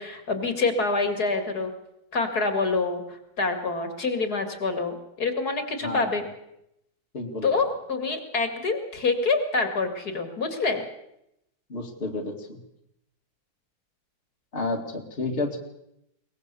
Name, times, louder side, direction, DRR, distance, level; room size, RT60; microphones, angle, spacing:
voice 1, 0.0-1.7 2.1-6.2 7.4-10.8, left 3 dB, 55° left, 7 dB, 2.6 m, -26 dB
voice 2, 7.1-7.5 11.7-12.6 14.5-15.6, left 2 dB, 30° left, 3 dB, 2.2 m, -30 dB
22.5 x 20.0 x 6.9 m, 0.82 s
omnidirectional pair, 2.0 m